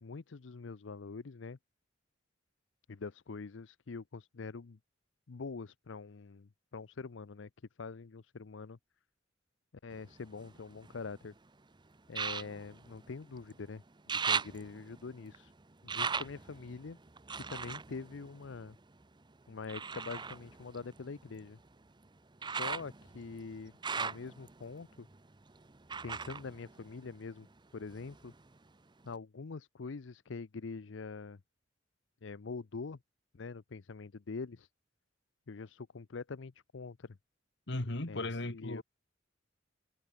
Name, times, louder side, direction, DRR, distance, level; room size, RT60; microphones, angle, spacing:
voice 1, 0.0-1.6 2.9-4.8 5.3-7.5 7.8-8.8 9.8-11.3 12.1-13.8 14.1-15.5 15.8-17.0 17.4-18.8 19.5-21.6 22.4-25.1 26.0-27.5 27.7-28.3 29.0-31.4 32.2-33.0 33.3-34.7 35.5-37.2 38.1-38.8, left 4 dB, 80° left, 0.6 m, -44 dB
sound 1, 9.9-11.3 12.1-13.6 13.9-19.0 19.7-27.5 27.8-28.7 29.1-29.2, right 5 dB, 25° right, 0.8 m, -39 dB
voice 2, 37.7-38.8, left 2 dB, 65° left, 2.1 m, -36 dB
head